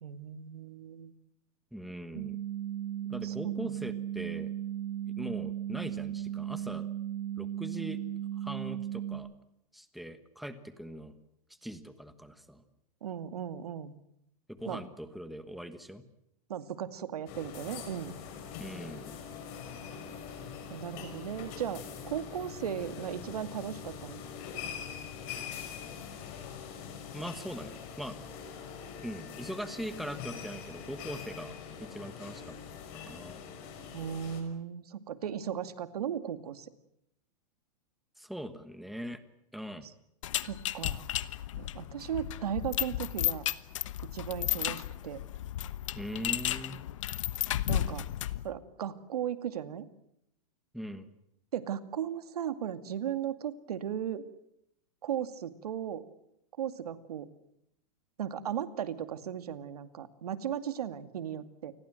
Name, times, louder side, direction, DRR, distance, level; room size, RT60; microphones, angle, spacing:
voice 1, 0.0-1.1 3.2-3.8 13.0-14.0 14.7-14.8 16.5-18.2 20.7-24.2 33.9-36.7 40.4-41.1 41.6-43.4 44.0-45.2 47.7-48.1 48.4-49.9 51.5-54.3 55.0-56.0 56.6-57.3 58.2-61.7, right 9 dB, 90° right, 10 dB, 2.3 m, -36 dB
voice 2, 1.7-2.4 3.1-4.5 5.1-6.9 7.4-8.0 8.3-9.3 9.7-11.1 11.6-12.6 14.5-16.0 18.6-19.1 27.1-28.2 29.0-31.5 31.8-32.6 33.0-33.4 38.2-39.2 39.5-39.9 45.9-46.8 50.7-51.1, equal, ahead, 10 dB, 1.2 m, -41 dB
sound 1, 2.1-9.1, right 11 dB, 70° right, 6.3 m, -36 dB
sound 2, 17.3-34.4, left 7 dB, 35° left, 5.4 m, -43 dB
sound 3, 40.2-48.5, left 13 dB, 55° left, 1.2 m, -33 dB
29.0 x 21.0 x 7.8 m, 0.80 s
supercardioid pair, 170°, 19 cm